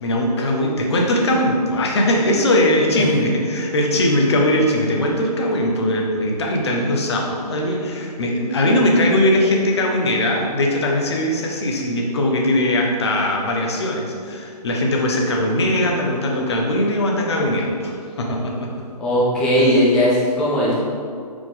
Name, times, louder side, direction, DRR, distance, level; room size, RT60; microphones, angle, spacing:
voice 1, 0.0-18.7, left 1 dB, 40° left, 0 dB, 1.0 m, -20 dB
voice 2, 19.0-20.7, equal, 5° left, -7 dB, 0.4 m, -17 dB
5.6 x 4.9 x 3.8 m, 2.3 s
figure-of-eight pair, 135°, 21 cm